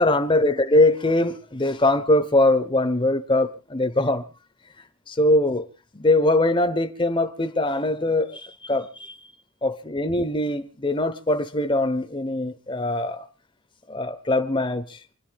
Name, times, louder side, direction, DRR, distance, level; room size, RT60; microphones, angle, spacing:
voice 1, 0.0-4.2 5.1-5.7 5.9-9.2 9.6-13.2 13.9-15.0, left 2 dB, 25° left, 1.0 m, -22 dB
28.5 x 11.0 x 2.4 m
head